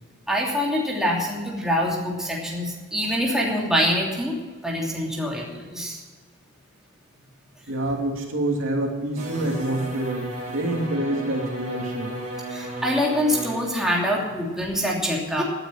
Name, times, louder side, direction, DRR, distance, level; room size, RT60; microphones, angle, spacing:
voice 1, 0.3-4.4 4.6-6.0 12.5-15.4, equal, 5° right, -3 dB, 2.9 m, -25 dB
voice 2, 7.7-12.2, right 1 dB, 65° right, 0 dB, 3.0 m, -27 dB
sound 1, 9.2-13.7, right 1 dB, 35° right, 4.2 m, -34 dB
17.0 x 9.8 x 5.9 m, 1.4 s
head